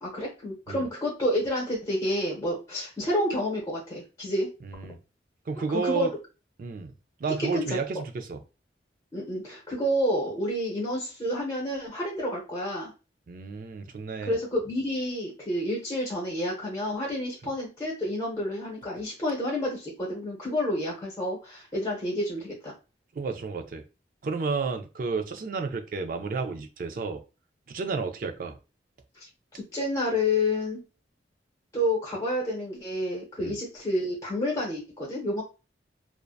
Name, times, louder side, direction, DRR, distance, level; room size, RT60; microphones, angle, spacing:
voice 1, 0.0-4.5 5.6-6.1 7.4-7.8 9.1-12.9 14.3-22.7 29.2-29.3 29.5-30.8 31.7-35.4, left 1 dB, 15° left, 0.8 m, -29 dB
voice 2, 4.6-5.0 5.5-6.1 6.6-6.9 7.2-8.4 13.3-14.3 23.1-23.8 24.2-27.2 27.7-28.6 33.4-33.6, right 4 dB, 50° right, 0.3 m, -31 dB
2.6 x 2.1 x 2.3 m
head